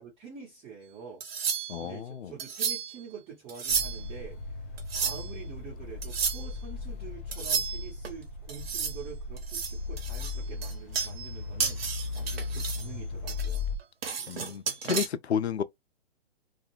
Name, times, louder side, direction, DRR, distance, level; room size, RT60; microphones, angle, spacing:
voice 1, 0.0-4.4 4.9-13.7, right 7 dB, 20° right, 1.0 m, -46 dB
sound 1, 1.2-1.9 2.4-3.0 3.5-4.1 4.8-5.4 6.0-6.5 7.3-8.1 8.5-9.0 9.4-11.3 11.6-12.9 13.3-15.1, right 6 dB, 65° right, 0.9 m, -32 dB
voice 2, 1.7-2.3 14.3-15.6, left 8 dB, 80° left, 0.5 m, -31 dB
sound 2, 3.7-13.8, left 4 dB, 15° left, 0.3 m, -37 dB
2.3 x 2.1 x 3.1 m
figure-of-eight pair, 125°, 32 cm